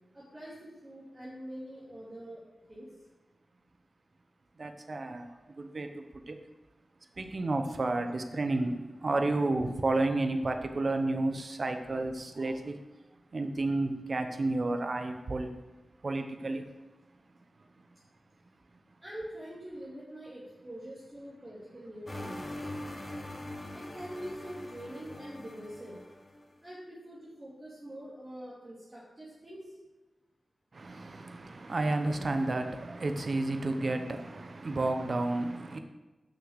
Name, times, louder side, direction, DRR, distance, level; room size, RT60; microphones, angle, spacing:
voice 1, 0.1-2.4 2.7-2.9 19.0-22.7 23.7-26.0 26.6-29.8, equal, 25° right, 2.4 m, -44 dB
voice 2, 4.6-5.3 5.6-6.4 7.2-12.8 13.3-15.5 16.0-16.7 30.7-35.8, right 2 dB, 50° right, 0.9 m, -31 dB
sound 1, 22.1-26.5, left 1 dB, 25° left, 1.0 m, -42 dB
6.4 x 6.2 x 6.4 m
wide cardioid pair, 90°, 0 cm